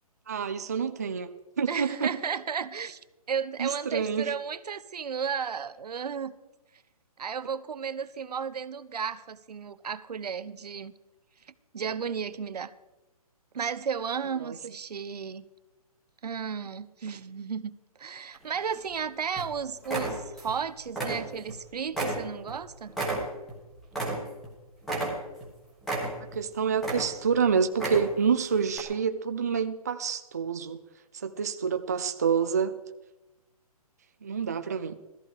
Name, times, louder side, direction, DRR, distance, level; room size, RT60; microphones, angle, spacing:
voice 1, 0.3-1.3 1.6-2.2 3.6-4.3 14.4-14.6 26.3-30.8 31.1-32.8 34.2-35.0, right 6 dB, 25° right, 0.5 m, -27 dB
voice 2, 1.7-3.0 3.3-6.3 7.2-10.9 11.7-12.7 13.5-15.5 16.2-22.9, right 6 dB, 80° right, 1.0 m, -34 dB
sound 1, 18.3-19.0 19.4-19.5 19.8-20.6 20.9-21.6 21.9-24.5 24.8-25.5 25.8-26.4 26.8-27.4 27.7-28.3 28.7-28.8, right 2 dB, ahead, 1.4 m, -32 dB
18.0 x 14.0 x 4.8 m
hypercardioid pair, 180°, 20 cm